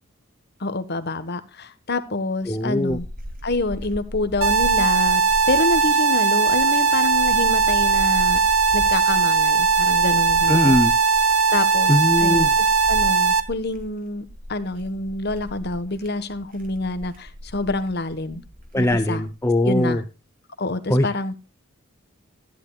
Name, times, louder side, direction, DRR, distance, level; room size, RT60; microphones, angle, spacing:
voice 1, 0.6-3.1 3.4-5.2 5.5-8.4 8.7-10.8 11.5-18.4 18.7-19.2 19.6-20.0 20.6-21.4, left 2 dB, 50° left, 12 dB, 1.3 m, -27 dB
sound 1, 2.4-19.3, equal, 40° right, 2.4 m, -37 dB
voice 2, 2.5-3.0 10.5-10.9 11.9-12.5 18.7-20.0 20.9-21.1, left 1 dB, 10° left, 6 dB, 0.7 m, -20 dB
sound 2, 4.4-13.4, right 4 dB, 85° right, 1.2 m, -19 dB
15.0 x 11.0 x 2.3 m, 0.30 s
head